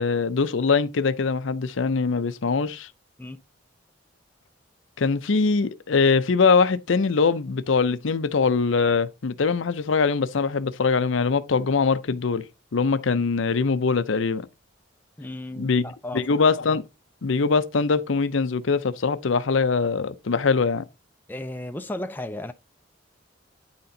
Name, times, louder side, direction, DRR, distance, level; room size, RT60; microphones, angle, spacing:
voice 1, 0.0-2.9 5.0-12.5 12.7-14.5 15.6-15.8 16.1-16.8 17.2-20.9, left 4 dB, 70° left, 0.6 m, -22 dB
voice 2, 15.2-16.3 21.3-22.5, left 1 dB, 10° left, 0.4 m, -34 dB
9.5 x 4.3 x 3.8 m
head